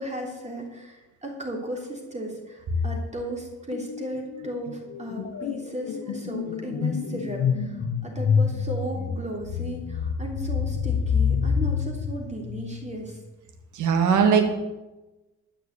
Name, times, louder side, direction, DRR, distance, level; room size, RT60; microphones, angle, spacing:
voice 1, 0.0-13.2, right 1 dB, 25° right, 0 dB, 3.3 m, -35 dB
sound 1, 3.7-4.0 4.3-13.1, left 6 dB, 70° left, 1.3 m, -27 dB
voice 2, 13.8-14.4, right 6 dB, 80° right, 4 dB, 1.9 m, -19 dB
13.0 x 6.5 x 8.3 m, 1.1 s
cardioid pair, 90°, 30 cm